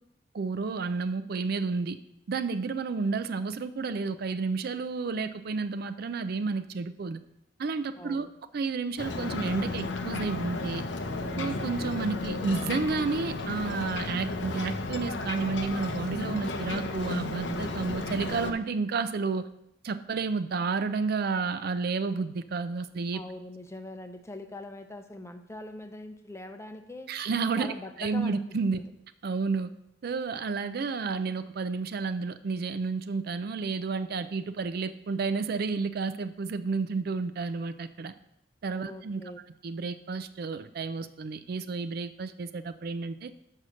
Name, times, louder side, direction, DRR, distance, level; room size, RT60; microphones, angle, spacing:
voice 1, 0.3-2.0 2.3-7.2 7.6-8.3 8.5-10.8 11.4-19.5 19.8-23.2 27.1-28.8 29.2-29.7 30.0-38.1 38.6-39.2 39.6-43.3, right 4 dB, 55° right, 12 dB, 0.4 m, -31 dB
voice 2, 8.0-8.3 23.1-27.1 27.6-28.4 28.7-28.8 38.8-39.4, left 1 dB, 15° left, 7 dB, 0.6 m, -42 dB
Ocean, 9.0-18.5, left 2 dB, 75° left, 0.7 m, -33 dB
6.5 x 5.7 x 6.2 m, 0.81 s
head